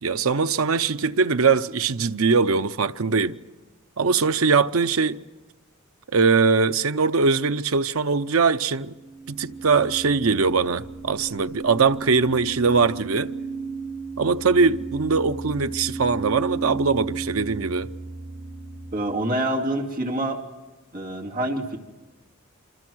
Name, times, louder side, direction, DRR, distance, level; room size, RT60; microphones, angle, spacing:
voice 1, 0.0-3.4 4.0-5.2 6.1-8.9 9.3-13.3 14.2-17.9, right 4 dB, 75° right, 0.7 m, -21 dB
sound 1, 8.8-18.9, right 4 dB, 55° right, 3.7 m, -34 dB
voice 2, 18.9-20.4 20.9-21.8, right 1 dB, 40° right, 2.6 m, -26 dB
27.5 x 25.5 x 6.2 m
head